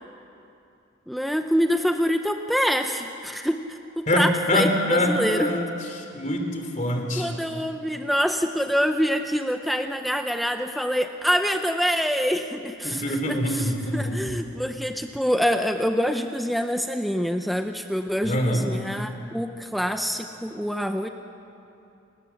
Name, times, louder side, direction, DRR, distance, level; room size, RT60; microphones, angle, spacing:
voice 1, 1.1-5.5 7.2-21.1, equal, ahead, 6 dB, 0.7 m, -26 dB
voice 2, 4.1-5.7 5.9-7.4 12.8-14.2 18.2-18.6, left 1 dB, 35° left, 3 dB, 3.2 m, -24 dB
29.0 x 20.0 x 7.2 m, 2.7 s
head